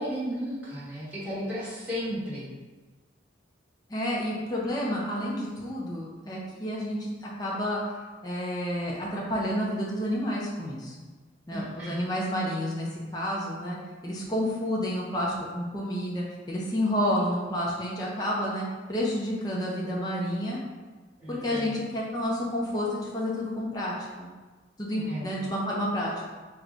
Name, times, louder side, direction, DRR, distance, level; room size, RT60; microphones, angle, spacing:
voice 1, 0.0-2.5 11.5-12.1 21.2-21.7 24.9-25.3, equal, 10° right, -12 dB, 1.4 m, -34 dB
voice 2, 3.9-7.9 8.2-10.9 11.5-13.8 14.0-20.6 21.3-24.3 24.8-26.3, equal, 20° left, -5 dB, 0.6 m, -30 dB
3.5 x 2.2 x 3.8 m, 1.3 s
head